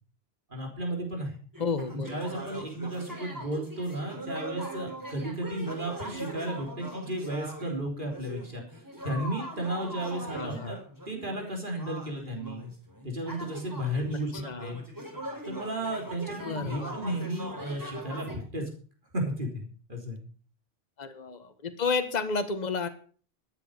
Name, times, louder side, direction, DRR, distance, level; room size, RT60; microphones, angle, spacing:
voice 1, 0.5-1.4 1.9-8.6 9.0-10.8 11.1-12.7 13.0-14.3 14.6-14.8 15.5-18.7 19.1-20.2, right 1 dB, 50° right, 1 dB, 3.9 m, -34 dB
sound 1, 1.5-7.8 8.1-18.4, right 1 dB, 20° right, 4.1 m, -41 dB
voice 2, 1.6-2.2 10.3-10.7 14.3-14.8 16.4-17.0 21.0-22.9, left 4 dB, 40° left, 10 dB, 1.3 m, -31 dB
13.0 x 9.3 x 6.7 m, 0.43 s
omnidirectional pair, 1.1 m